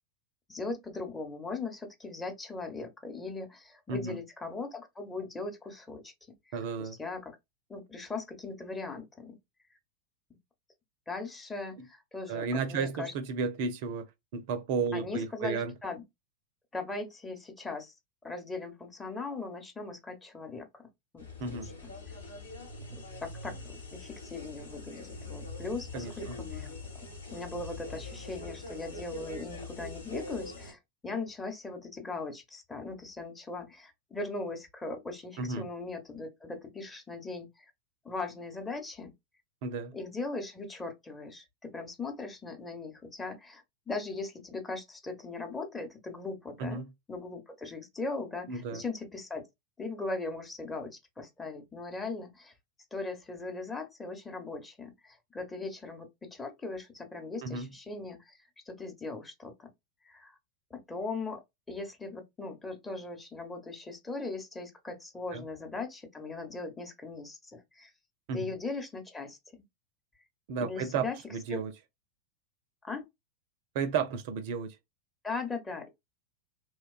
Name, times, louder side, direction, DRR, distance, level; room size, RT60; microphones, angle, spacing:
voice 1, 0.5-6.1 6.5-7.4 7.7-9.4 11.1-13.1 14.9-16.0 16.7-17.9 18.2-20.9 21.1-21.7 22.1-22.2 22.9-26.7 27.0-37.7 38.0-39.1 39.9-46.8 47.1-49.4 49.8-52.5 52.9-58.4 58.7-59.7 60.0-60.3 60.7-61.4 61.7-67.9 68.3-69.6 70.6-71.2 71.5-71.6 72.8-73.1 75.2-75.9, left 3 dB, 15° left, 0.8 m, -39 dB
voice 2, 6.5-7.0 12.3-14.1 14.3-15.7 21.4-21.7 25.9-26.4 35.4-35.7 39.6-39.9 46.6-46.9 48.5-48.8 57.4-57.7 65.3-65.4 68.3-68.5 70.5-71.7 73.7-74.8, right 5 dB, 55° right, 0.5 m, -33 dB
sound 1, 21.2-30.7, left 2 dB, 80° left, 1.1 m, -43 dB
3.0 x 2.2 x 2.3 m
figure-of-eight pair, 90°, 0 cm